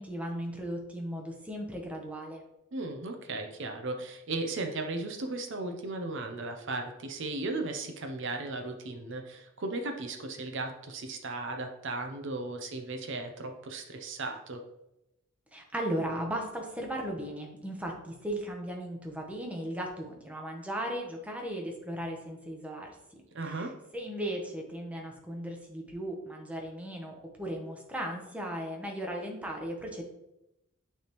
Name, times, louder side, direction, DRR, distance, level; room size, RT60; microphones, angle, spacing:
voice 1, 0.0-2.4 15.5-22.9 23.4-23.5 23.9-30.0, right 1 dB, 5° right, 0 dB, 0.8 m, -36 dB
voice 2, 2.7-14.6 23.3-23.7, right 2 dB, 60° right, 5 dB, 0.7 m, -36 dB
9.1 x 3.4 x 3.0 m, 0.88 s
head